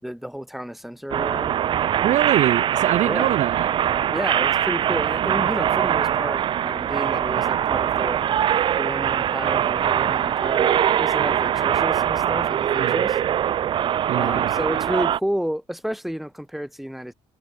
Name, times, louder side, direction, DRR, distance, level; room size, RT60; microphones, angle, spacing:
voice 1, 0.0-1.6 3.0-3.3 4.1-8.2 8.8-13.2 14.2-17.1, equal, ahead, 6.1 m, -31 dB
sound 1, 1.1-15.2, right 10 dB, 40° right, 0.4 m, -22 dB
voice 2, 2.0-3.7 12.8-13.0 14.1-14.5, right 13 dB, 65° right, 1.6 m, -23 dB
cardioid pair, 150°, 13 cm